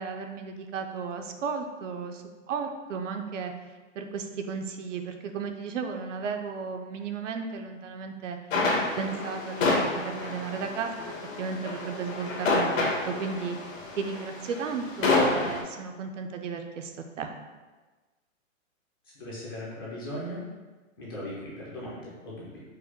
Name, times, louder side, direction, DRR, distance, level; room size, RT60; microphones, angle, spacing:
voice 1, 0.0-3.5 3.9-8.4 9.0-11.1 11.4-17.3, right 5 dB, 65° right, 5 dB, 0.6 m, -34 dB
sound 1, 8.5-15.6, left 2 dB, 70° left, 1.3 m, -28 dB
voice 2, 19.1-20.4 21.0-22.6, equal, 20° left, -7 dB, 0.4 m, -38 dB
4.8 x 2.1 x 4.4 m, 1.3 s
hypercardioid pair, 155°, 40 cm